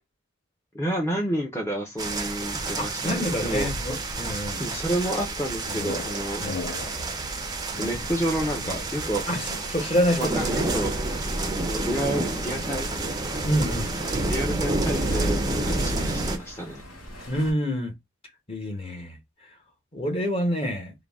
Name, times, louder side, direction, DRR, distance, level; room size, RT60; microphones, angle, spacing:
voice 1, 0.7-3.7 4.6-6.4 7.8-9.3 10.2-10.9 11.7-12.9 14.3-16.8, right 1 dB, 10° left, 0.8 m, -30 dB
sound 1, 2.0-16.4, right 2 dB, 20° right, 0.6 m, -29 dB
voice 2, 2.8-4.6 6.4-6.6 9.3-10.7 13.4-13.9 17.3-17.9 18.5-19.2 19.9-20.9, equal, 30° left, 1.1 m, -27 dB
sound 2, 5.2-9.8, left 4 dB, 50° left, 0.4 m, -39 dB
sound 3, 9.3-17.5, left 1 dB, 70° left, 1.8 m, -45 dB
3.8 x 2.3 x 3.5 m
head